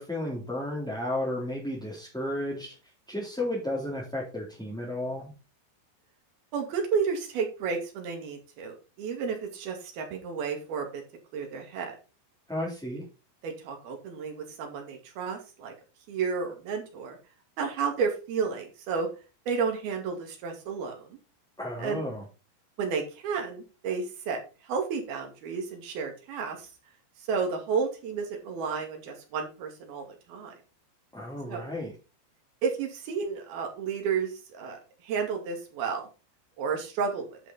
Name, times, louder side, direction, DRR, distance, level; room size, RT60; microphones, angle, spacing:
voice 1, 0.0-2.7 3.1-5.3 12.5-13.0 21.6-22.2 31.1-31.9, left 1 dB, ahead, -6 dB, 2.9 m, -33 dB
voice 2, 6.5-11.0 11.3-12.0 13.4-15.7 16.1-17.2 17.6-19.1 19.5-21.2 21.8-22.0 22.8-26.7 27.2-30.6 31.5-31.6 32.6-36.1 36.6-37.4, right 5 dB, 70° right, 3 dB, 4.0 m, -32 dB
10.5 x 6.1 x 4.2 m, 0.32 s
omnidirectional pair, 4.6 m